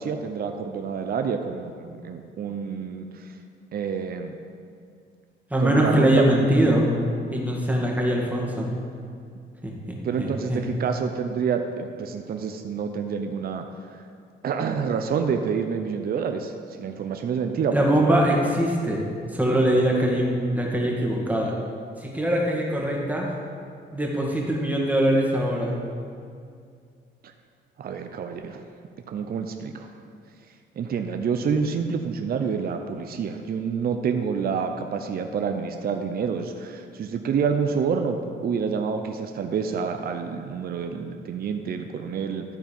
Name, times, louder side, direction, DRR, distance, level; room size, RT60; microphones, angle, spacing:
voice 1, 0.0-3.3 3.7-4.3 5.6-6.2 10.0-13.6 13.9-14.0 14.4-18.2 27.2-27.3 27.8-28.6 29.1-29.9 30.8-42.4, right 6 dB, 50° right, 6 dB, 0.6 m, -28 dB
voice 2, 5.5-6.9 7.3-8.7 9.6-10.6 17.7-19.0 19.3-21.6 22.0-23.3 23.9-25.8, right 1 dB, 10° right, -2 dB, 2.0 m, -22 dB
12.5 x 4.6 x 5.3 m, 2.3 s
cardioid pair, 90°, 20 cm